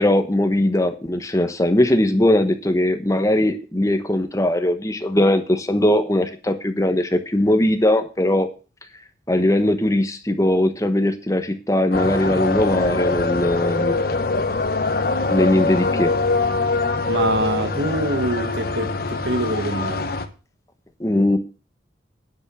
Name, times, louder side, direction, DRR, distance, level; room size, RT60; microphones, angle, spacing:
voice 1, 0.0-8.5 9.3-14.0 15.3-16.1 21.0-21.4, left 1 dB, 15° left, 1.1 m, -20 dB
sound 1, 11.9-20.2, left 3 dB, 50° left, 1.2 m, -23 dB
voice 2, 17.1-20.1, right 1 dB, 70° right, 1.6 m, -25 dB
10.0 x 7.3 x 6.9 m
head